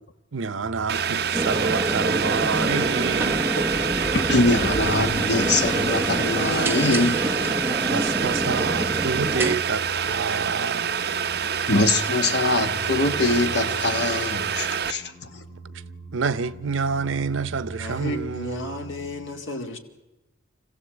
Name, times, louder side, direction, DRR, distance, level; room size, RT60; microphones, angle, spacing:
voice 1, 0.3-3.4 7.9-11.0 16.1-18.8, right 5 dB, 85° right, 0.7 m, -28 dB
sound 1, 0.6-19.3, right 3 dB, 25° left, 3.4 m, -41 dB
Boiling, 0.9-14.9, right 7 dB, 55° right, 0.7 m, -27 dB
sound 2, 1.3-9.6, right 1 dB, 10° right, 0.8 m, -27 dB
voice 2, 4.1-7.5 11.7-15.1, left 2 dB, 60° left, 1.3 m, -23 dB
voice 3, 17.8-19.8, left 1 dB, 80° left, 2.4 m, -33 dB
26.0 x 15.5 x 8.0 m
head